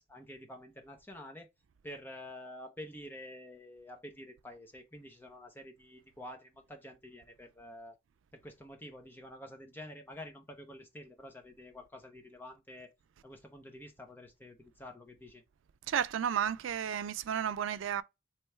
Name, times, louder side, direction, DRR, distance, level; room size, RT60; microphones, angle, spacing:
voice 1, 0.0-1.5 1.8-8.0 8.3-12.9 13.2-15.4, left 1 dB, 10° left, 0.8 m, -49 dB
voice 2, 15.9-18.0, right 8 dB, 90° right, 0.4 m, -32 dB
3.3 x 3.1 x 4.3 m
head